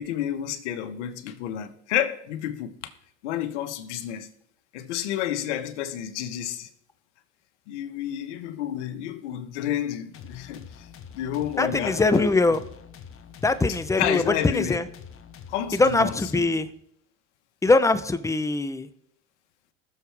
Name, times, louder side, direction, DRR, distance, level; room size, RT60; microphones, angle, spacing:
voice 1, 0.0-2.7 3.2-4.3 4.7-6.7 7.7-10.6 11.1-12.3 13.7-14.8 15.5-16.5, left 11 dB, 80° left, 1.3 m, -30 dB
sound 1, 10.1-16.8, left 7 dB, 40° left, 1.2 m, -46 dB
voice 2, 11.6-12.6 13.4-14.8 15.8-16.7 17.6-18.9, left 3 dB, 10° left, 0.8 m, -22 dB
20.0 x 7.0 x 3.4 m
supercardioid pair, 95°, 34 cm